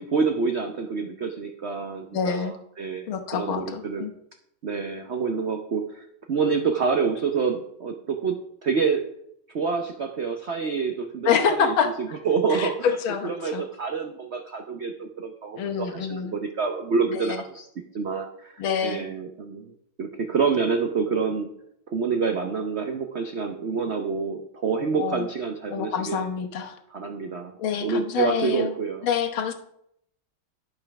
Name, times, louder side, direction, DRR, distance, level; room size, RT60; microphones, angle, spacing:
voice 1, 0.0-4.1 4.6-9.0 9.5-13.0 13.2-17.7 17.9-21.5 21.9-26.3 26.9-27.5 27.8-29.1, right 5 dB, 85° right, 5 dB, 0.5 m, -27 dB
voice 2, 2.1-2.5 3.1-4.1 10.8-10.9 11.3-11.9 12.5-12.7 13.0-13.6 15.6-16.3 17.1-17.4 18.6-19.1 25.0-25.3 25.7-26.8 27.6-28.7 29.0-29.5, left 7 dB, 80° left, 5 dB, 1.9 m, -26 dB
11.0 x 5.5 x 5.9 m, 0.75 s
omnidirectional pair, 2.2 m